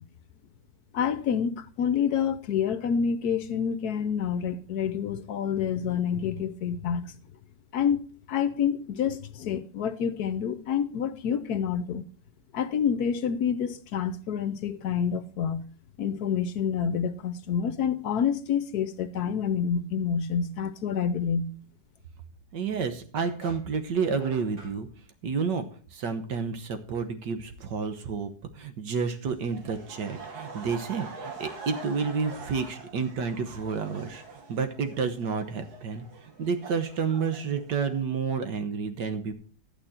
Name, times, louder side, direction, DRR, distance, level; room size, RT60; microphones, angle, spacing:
voice 1, 0.9-7.1 7.7-8.0 8.3-12.0 12.5-15.7 16.0-21.5, left 7 dB, 70° left, 1.1 m, -28 dB
sound 1, 22.3-22.4 23.2-24.8, right 1 dB, 40° right, 6.6 m, -47 dB
voice 2, 22.5-24.9 25.2-25.7 25.9-36.1 36.4-39.3, right 5 dB, 75° right, 1.8 m, -30 dB
Laughter, 29.5-38.0, right 4 dB, 60° right, 2.2 m, -44 dB
11.0 x 8.9 x 4.3 m
omnidirectional pair, 1.9 m